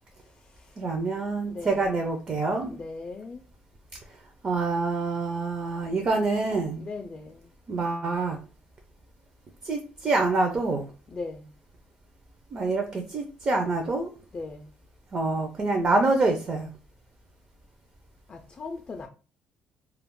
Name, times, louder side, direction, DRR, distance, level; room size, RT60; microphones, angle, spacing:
voice 1, 0.2-0.8 1.4-1.9 2.6-3.4 6.7-7.5 11.1-11.5 14.3-14.7 18.3-19.1, left 3 dB, 30° left, 0.3 m, -39 dB
voice 2, 0.8-2.7 4.4-6.8 7.7-8.4 9.6-10.9 12.5-14.1 15.1-16.7, right 3 dB, 35° right, 0.5 m, -26 dB
2.3 x 2.0 x 3.7 m
cardioid pair, 120°, 4 cm